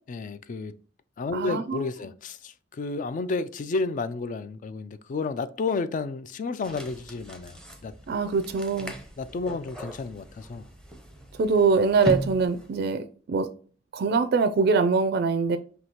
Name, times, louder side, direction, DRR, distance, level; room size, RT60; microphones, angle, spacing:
voice 1, 0.1-0.8 1.2-7.9 9.2-10.7, left 3 dB, 45° left, 0.3 m, -31 dB
voice 2, 1.3-1.9 8.1-8.9 11.4-13.5 13.9-15.6, right 4 dB, 60° right, 0.4 m, -23 dB
sound 1, 6.6-12.9, right 1 dB, 5° left, 0.7 m, -38 dB
5.9 x 2.7 x 2.8 m
head